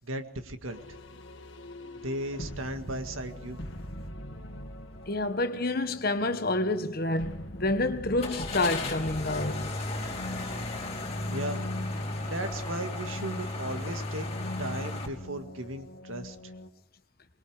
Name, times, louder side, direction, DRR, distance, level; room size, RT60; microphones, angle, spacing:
voice 1, 0.0-0.8 1.9-3.7 11.3-11.6 12.2-14.3 14.6-16.4, right 1 dB, 90° right, 2.0 m, -36 dB
sound 1, 0.7-16.7, left 1 dB, 65° left, 1.9 m, -42 dB
sound 2, 4.9-5.2 5.6-5.7 8.2-15.1, left 2 dB, 30° left, 3.4 m, -35 dB
voice 2, 5.1-9.7, left 2 dB, 50° left, 1.5 m, -28 dB
24.5 x 21.5 x 5.0 m
head